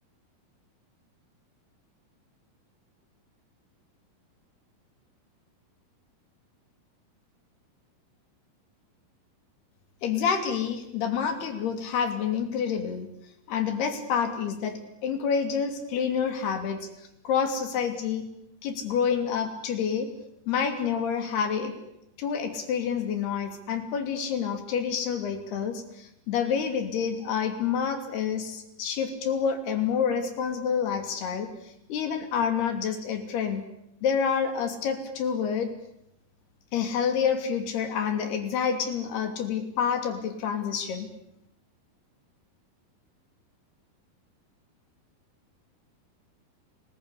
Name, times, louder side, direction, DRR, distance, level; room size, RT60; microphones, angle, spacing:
voice 1, 10.0-13.1 13.5-16.9 17.2-18.3 18.6-20.1 20.5-21.7 22.2-33.6 34.0-35.7 36.7-41.1, left 7 dB, 90° left, 7 dB, 4.9 m, -28 dB
30.0 x 21.0 x 8.3 m, 0.79 s
omnidirectional pair, 4.5 m